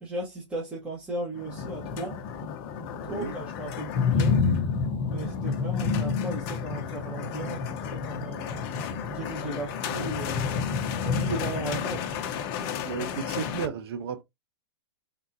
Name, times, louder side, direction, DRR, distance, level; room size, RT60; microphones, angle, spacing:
voice 1, 0.0-2.2 3.0-4.4 5.0-8.6 9.1-10.6 11.0-12.1, right 1 dB, 10° right, 1.2 m, -36 dB
sound 1, 1.4-13.7, left 5 dB, 35° left, 0.8 m, -30 dB
voice 2, 3.1-3.4 12.8-14.2, right 8 dB, 60° right, 0.9 m, -33 dB
3.8 x 3.6 x 2.7 m
hypercardioid pair, 150°, 15 cm